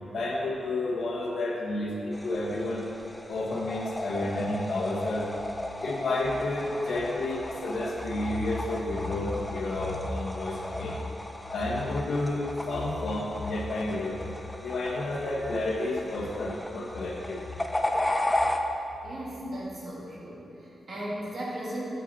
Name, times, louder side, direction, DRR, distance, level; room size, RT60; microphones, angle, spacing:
voice 1, 0.1-2.8 3.3-5.3 5.8-11.0 11.5-14.2 14.6-17.4 19.4-19.5, left 2 dB, 70° left, -2 dB, 1.2 m, -30 dB
sound 1, 2.1-18.6, left 1 dB, 15° left, 0.4 m, -35 dB
voice 2, 19.0-21.8, right 1 dB, 45° right, -5 dB, 1.8 m, -37 dB
8.3 x 5.8 x 4.2 m, 2.8 s
wide cardioid pair, 135°, 0 cm